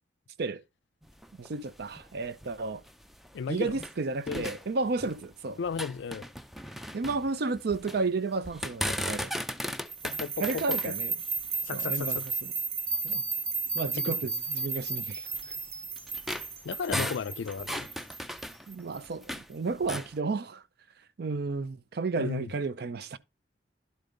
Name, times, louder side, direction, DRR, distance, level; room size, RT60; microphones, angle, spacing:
sound 1, 1.0-4.0 4.3-5.3 5.6-8.0 8.4-12.5 13.1-13.2 13.7-13.8 14.6-19.5 19.8-20.1, equal, ahead, 0.4 m, -37 dB
voice 1, 1.4-2.8 3.5-5.6 6.9-9.3 10.4-11.1 11.7-12.5 13.0-13.2 13.7-15.3 18.7-20.6 21.2-23.2, right 3 dB, 60° right, 0.5 m, -32 dB
voice 2, 3.3-3.8 4.3-4.5 5.6-6.2 10.0-10.9 11.7-12.3 14.0-14.3 16.6-17.9 22.2-22.5, left 6 dB, 70° left, 0.4 m, -34 dB
sound 2, 9.9-19.0, right 4 dB, 35° right, 0.9 m, -34 dB
11.5 x 5.2 x 3.8 m
head